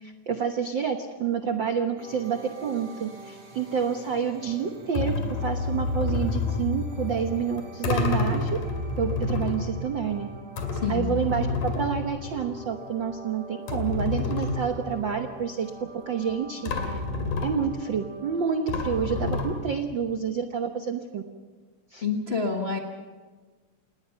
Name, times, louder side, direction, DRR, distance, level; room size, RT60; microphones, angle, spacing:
voice 1, 0.0-8.6 9.0-10.3 10.9-17.0 17.4-21.2 21.9-22.0, right 7 dB, 80° right, 6 dB, 1.0 m, -29 dB
sound 1, 2.0-19.6, right 2 dB, 45° right, 4.5 m, -47 dB
sound 2, 4.9-12.8 13.1-13.2 13.7-15.3 16.3-16.4 16.7-18.0 18.7-20.0, left 3 dB, 75° left, 4.0 m, -29 dB
voice 2, 10.7-11.1 22.0-22.8, left 5 dB, 55° left, 2 dB, 0.6 m, -28 dB
28.5 x 19.5 x 5.7 m, 1.4 s
omnidirectional pair, 3.8 m